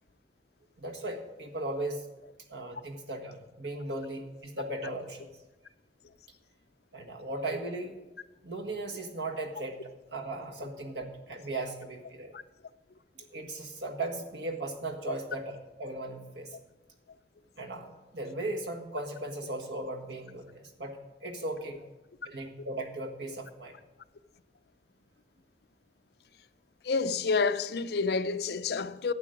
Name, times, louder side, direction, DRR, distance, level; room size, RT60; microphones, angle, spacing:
voice 1, 0.8-2.0 2.5-5.3 6.9-8.0 8.4-12.3 13.3-16.5 17.6-21.8 22.2-23.7, right 2 dB, 80° right, 1.6 m, -37 dB
voice 2, 26.8-29.1, left 4 dB, 65° left, 0.5 m, -29 dB
12.0 x 8.4 x 5.1 m
head